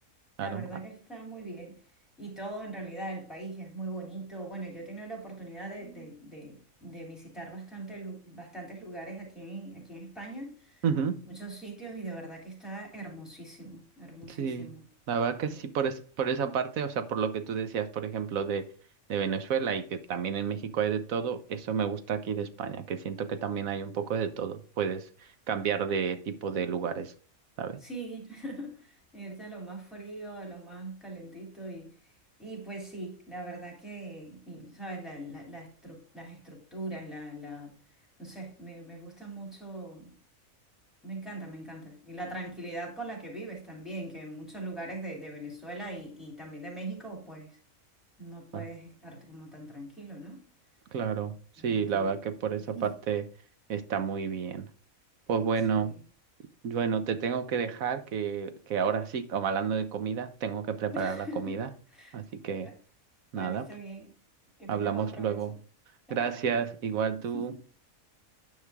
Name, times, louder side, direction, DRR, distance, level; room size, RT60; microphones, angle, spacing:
voice 1, 0.4-1.8 2.2-10.8 11.3-14.8 15.5-15.6 27.8-31.9 32.4-37.8 38.2-40.1 41.0-47.6 48.2-50.4 51.6-52.1 52.5-52.9 55.7-56.0 60.9-61.6 61.9-62.2 62.6-62.7 63.4-64.2 64.6-65.6 66.1-66.6 67.3-67.6, right 2 dB, ahead, 3.4 m, -41 dB
voice 2, 10.8-11.2 14.3-14.8 15.1-18.7 19.1-25.1 25.5-27.1 27.6-27.8 48.5-48.6 50.9-51.3 51.6-53.2 53.7-54.7 55.3-56.0 56.6-61.7 62.1-62.7 63.3-63.7 64.7-65.5 66.1-67.5, right 7 dB, 75° right, 1.3 m, -30 dB
9.8 x 5.5 x 3.5 m
omnidirectional pair, 1.4 m